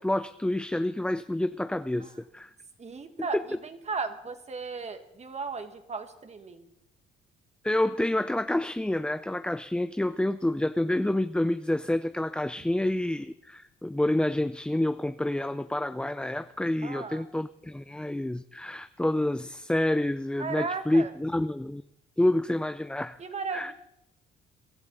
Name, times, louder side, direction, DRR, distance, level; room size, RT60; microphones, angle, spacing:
voice 1, 0.0-2.5 7.6-21.8 22.2-23.2 23.5-23.7, left 1 dB, 5° left, 11 dB, 0.5 m, -28 dB
voice 2, 2.8-6.7 16.8-17.3 20.4-21.1 23.2-23.7, right 4 dB, 35° right, 8 dB, 1.9 m, -36 dB
23.0 x 13.5 x 4.1 m, 0.78 s
cardioid pair, 85°, 20 cm